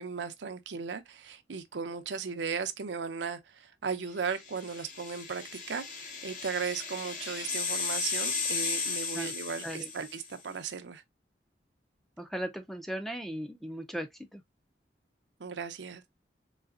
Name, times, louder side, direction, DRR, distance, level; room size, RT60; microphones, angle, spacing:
voice 1, 0.0-11.0 15.4-16.0, right 5 dB, 80° right, 0.6 m, -36 dB
sound 1, 4.3-10.3, left 4 dB, 45° left, 0.9 m, -35 dB
voice 2, 12.2-14.4, right 1 dB, ahead, 0.5 m, -37 dB
3.9 x 3.3 x 2.4 m
head